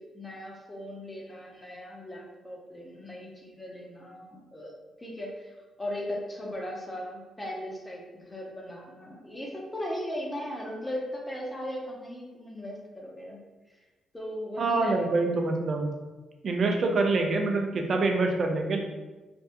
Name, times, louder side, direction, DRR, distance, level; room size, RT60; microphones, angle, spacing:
voice 1, 0.0-4.7 5.0-13.4 14.1-15.3, left 1 dB, 15° left, -1 dB, 0.8 m, -38 dB
voice 2, 14.6-15.9 16.4-18.8, right 3 dB, 55° right, 3 dB, 0.5 m, -25 dB
3.4 x 2.3 x 2.9 m, 1.2 s
cardioid pair, 80°, 0 cm